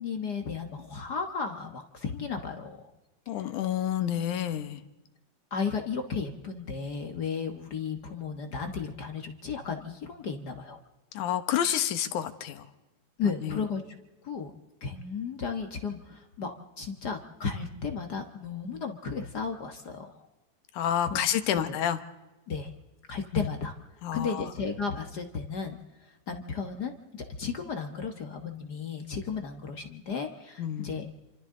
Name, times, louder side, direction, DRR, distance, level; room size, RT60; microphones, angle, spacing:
voice 1, 0.0-2.8 3.4-3.5 5.5-10.8 13.2-13.8 14.2-14.5 14.8-20.3 21.1-21.3 21.7-21.8 22.5-22.7 23.1-23.7 24.1-31.1, left 5 dB, 55° left, 4 dB, 1.1 m, -34 dB
voice 2, 3.3-4.8 11.1-12.7 13.4-13.6 20.7-22.0 23.3-23.5 24.0-24.5 30.6-31.0, left 10 dB, 75° left, 10 dB, 2.5 m, -29 dB
28.5 x 25.5 x 3.8 m, 1.1 s
omnidirectional pair, 3.6 m